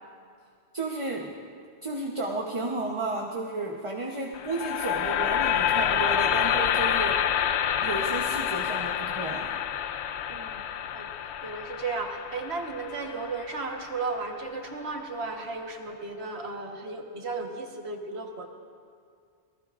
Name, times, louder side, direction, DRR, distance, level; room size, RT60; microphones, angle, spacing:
voice 1, 0.7-1.4 1.8-7.3 7.8-9.5, right 2 dB, 25° right, -1 dB, 0.9 m, -32 dB
sound 1, 4.3-14.5, left 9 dB, 70° left, 0.8 m, -28 dB
voice 2, 10.3-10.6 10.9-11.1 11.4-18.5, right 3 dB, 60° right, 3 dB, 1.5 m, -34 dB
26.5 x 18.0 x 2.5 m, 2.2 s
omnidirectional pair, 1.3 m